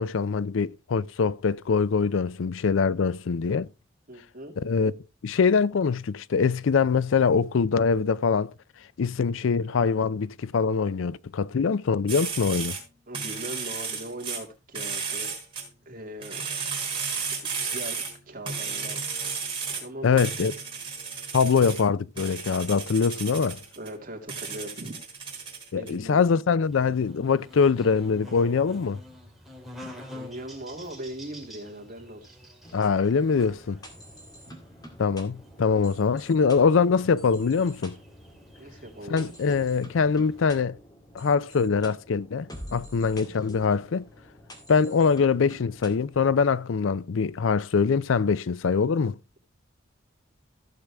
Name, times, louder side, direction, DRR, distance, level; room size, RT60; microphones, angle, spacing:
voice 1, 0.0-3.7 4.6-4.9 5.2-8.5 9.0-12.8 20.0-20.5 21.3-23.6 25.7-29.0 32.7-33.8 35.0-38.0 39.1-40.8 41.1-44.1 44.7-49.1, left 5 dB, 75° left, 0.4 m, -23 dB
voice 2, 4.1-4.5 13.1-15.4 15.9-16.4 17.0-19.4 19.8-20.3 23.8-25.0 25.7-26.2 29.8-32.4 34.4-34.6 38.6-39.6, right 1 dB, 45° right, 2.5 m, -40 dB
sound 1, 12.1-12.8 13.1-14.4 14.7-15.6 16.2-18.1 18.4-19.8 20.2-21.8 22.2-23.9 24.3-25.9, right 5 dB, 25° right, 3.7 m, -33 dB
Buzz, 26.6-40.6, left 1 dB, ahead, 2.3 m, -48 dB
sound 2, 32.6-46.5, equal, 20° left, 2.1 m, -48 dB
15.0 x 6.7 x 3.4 m
head